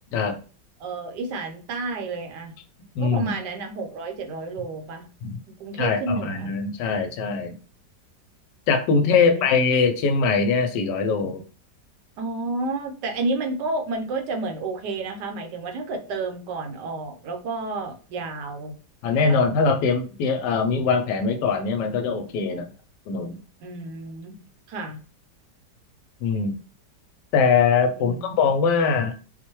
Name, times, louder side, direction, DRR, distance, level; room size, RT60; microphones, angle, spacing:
voice 1, 0.8-2.5 3.0-5.1 5.6-6.5 9.0-9.5 12.2-18.7 19.3-19.4 23.6-24.4 24.7-25.0 28.0-28.5, right 3 dB, 75° right, 4 dB, 1.3 m, -31 dB
voice 2, 3.0-3.3 5.2-5.4 5.8-7.5 8.7-11.4 19.0-22.7 23.1-23.4 26.2-26.5 27.3-29.1, left 5 dB, 75° left, 7 dB, 1.2 m, -22 dB
4.3 x 2.1 x 3.0 m, 0.36 s
omnidirectional pair, 1.9 m